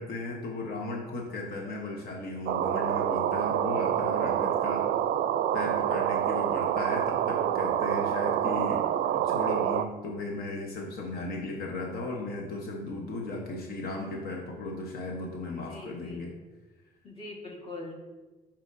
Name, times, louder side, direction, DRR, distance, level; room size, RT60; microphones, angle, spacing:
voice 1, 0.0-4.8 5.5-16.3, left 2 dB, 65° left, 0 dB, 1.0 m, -36 dB
sound 1, 2.5-9.8, right 10 dB, 65° right, 0.4 m, -27 dB
voice 2, 15.5-16.3 17.0-17.9, left 2 dB, 35° left, -1 dB, 1.5 m, -42 dB
10.5 x 4.4 x 2.6 m, 1.2 s
cardioid pair, 110°, 17 cm